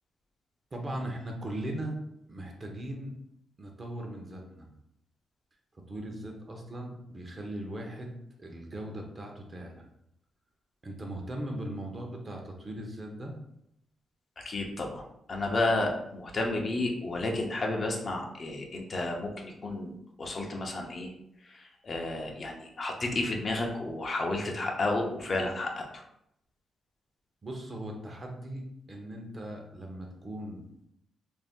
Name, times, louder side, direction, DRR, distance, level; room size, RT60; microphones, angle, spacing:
voice 1, 0.7-1.9 2.3-3.1 3.6-4.7 5.9-9.8 10.8-13.3 27.4-28.6 28.9-30.9, right 1 dB, 35° right, 1 dB, 0.7 m, -39 dB
voice 2, 14.4-15.0 15.3-21.1 21.5-26.0, left 2 dB, 45° left, 1 dB, 0.6 m, -32 dB
2.6 x 2.0 x 3.5 m, 0.78 s
cardioid pair, 75°, 0 cm